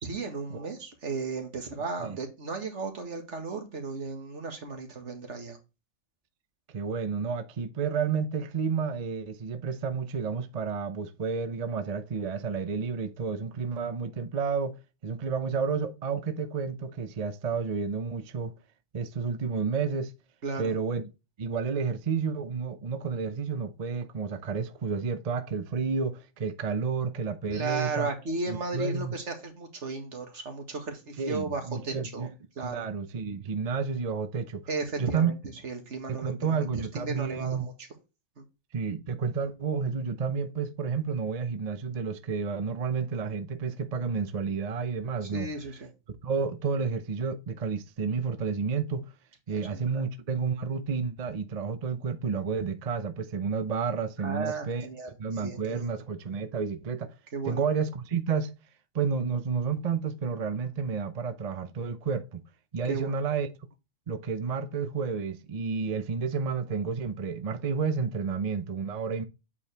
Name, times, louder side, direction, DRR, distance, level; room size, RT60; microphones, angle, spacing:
voice 1, 0.0-5.6 20.4-20.7 27.5-32.3 32.6-32.8 34.7-35.3 35.6-36.6 36.9-37.7 38.4-38.5 45.2-45.9 49.5-50.1 54.2-55.9 57.3-57.6 62.9-63.2, right 3 dB, 75° right, 2.0 m, -35 dB
voice 2, 6.7-18.5 18.9-20.1 20.6-21.0 21.4-28.1 28.5-29.1 31.2-32.3 32.6-34.6 35.0-35.3 36.1-37.7 38.7-45.5 46.2-49.1 49.5-54.9 55.2-57.2 57.4-58.5 58.9-62.4 62.7-63.5 64.1-69.2, right 5 dB, 40° right, 0.7 m, -31 dB
8.3 x 4.7 x 3.4 m
omnidirectional pair, 1.2 m